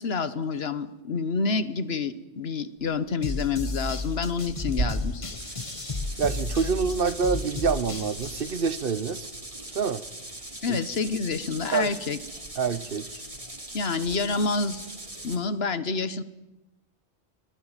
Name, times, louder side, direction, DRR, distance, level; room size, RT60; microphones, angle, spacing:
voice 1, 0.0-5.4 10.6-12.2 13.7-14.8 15.2-16.2, left 4 dB, 70° left, 14 dB, 1.5 m, -28 dB
Tearing, 2.8-15.4, right 2 dB, 80° right, 3.1 m, -41 dB
sound 1, 3.2-8.5, left 3 dB, 30° left, 1.2 m, -33 dB
sound 2, 5.4-15.4, right 1 dB, 30° right, 3.4 m, -41 dB
voice 2, 6.2-9.3 9.7-10.0 10.7-10.8 11.7-11.9 12.6-13.2, right 5 dB, 60° right, 17 dB, 1.2 m, -26 dB
24.5 x 17.5 x 9.0 m, 1.0 s
omnidirectional pair, 1.1 m